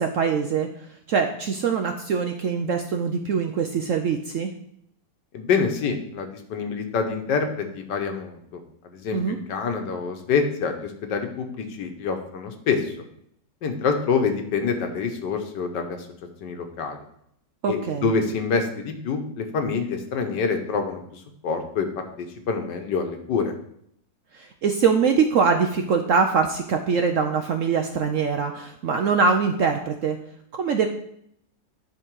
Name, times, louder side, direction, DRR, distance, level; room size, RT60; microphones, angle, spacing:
voice 1, 0.0-4.5 9.1-9.4 17.6-18.1 24.3-30.2 30.6-30.9, right 5 dB, 70° right, 5 dB, 0.8 m, -23 dB
voice 2, 5.3-12.9 13.6-16.0 16.4-17.0 17.7-21.9 22.2-23.5, left 5 dB, 80° left, 6 dB, 1.6 m, -26 dB
10.5 x 3.7 x 4.6 m, 0.71 s
omnidirectional pair, 1.9 m